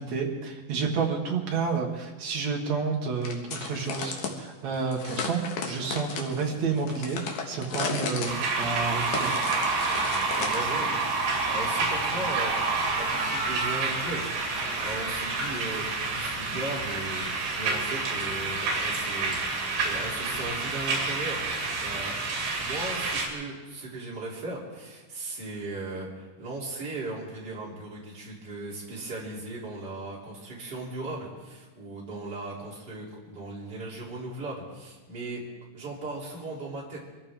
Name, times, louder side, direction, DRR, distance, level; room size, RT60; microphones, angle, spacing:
voice 1, 0.0-9.3, right 5 dB, 55° right, 1 dB, 2.4 m, -30 dB
sound 1, 3.2-4.4 4.9-10.7, left 5 dB, 60° left, 2.7 m, -35 dB
sound 2, 8.3-23.3, right 3 dB, 75° right, 4.3 m, -28 dB
voice 2, 9.9-12.5 12.9-14.3 14.8-21.4 21.8-22.1 22.6-35.4 35.7-37.0, right 2 dB, 25° right, -4 dB, 3.5 m, -37 dB
24.0 x 14.5 x 3.7 m, 1.2 s
omnidirectional pair, 4.4 m